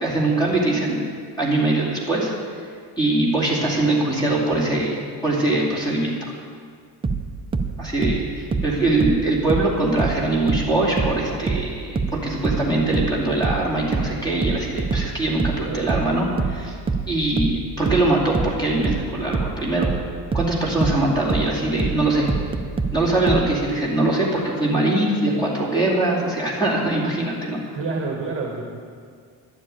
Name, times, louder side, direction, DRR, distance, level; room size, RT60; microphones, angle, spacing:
voice 1, 0.0-1.1 1.4-2.3 3.0-6.2 7.8-16.7 17.1-20.0 20.3-22.3 22.9-27.6, right 2 dB, 10° left, -5 dB, 2.5 m, -22 dB
sound 1, 7.0-10.2 10.5-23.5, right 4 dB, 15° right, 0.4 m, -25 dB
voice 2, 15.6-16.0 27.7-28.7, right 3 dB, 30° right, 0 dB, 1.4 m, -29 dB
11.5 x 7.5 x 8.8 m, 2.1 s
cardioid pair, 180°, 43 cm